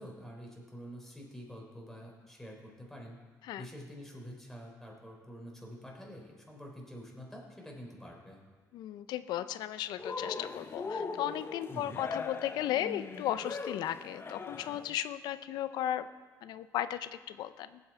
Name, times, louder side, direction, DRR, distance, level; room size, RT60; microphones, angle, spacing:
voice 1, 0.0-3.2 3.6-8.4 11.7-12.1, equal, 5° left, -1 dB, 4.0 m, -47 dB
voice 2, 8.7-16.1 16.4-17.8, left 12 dB, 75° left, 14 dB, 0.6 m, -35 dB
Cheering, 10.0-14.9, left 4 dB, 35° left, 0.9 m, -40 dB
18.5 x 7.8 x 4.5 m, 1.4 s
supercardioid pair, 80°, 7 cm